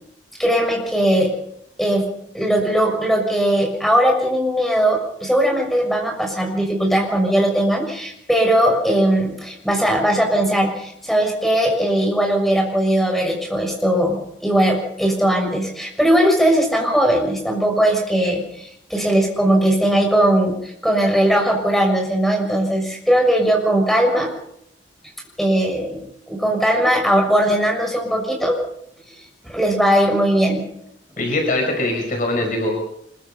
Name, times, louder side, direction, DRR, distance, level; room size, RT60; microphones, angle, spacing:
voice 1, 0.4-1.3 1.8-2.1 2.3-24.3 25.4-26.0 26.3-28.5 29.4-30.6, right 1 dB, ahead, 2 dB, 6.4 m, -19 dB
voice 2, 31.2-32.7, left 2 dB, 50° left, 2 dB, 5.6 m, -22 dB
25.0 x 22.5 x 5.5 m, 0.75 s
head